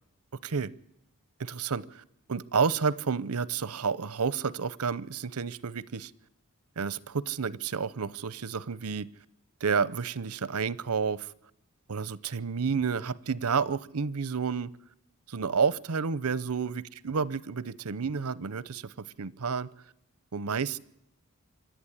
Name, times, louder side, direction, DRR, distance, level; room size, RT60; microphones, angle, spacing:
voice 1, 1.4-2.0 2.3-6.1 6.8-9.1 9.6-11.3 11.9-14.7 15.3-19.7 20.3-20.8, right 5 dB, 75° right, 20 dB, 0.7 m, -30 dB
26.0 x 11.5 x 10.0 m, 0.80 s
head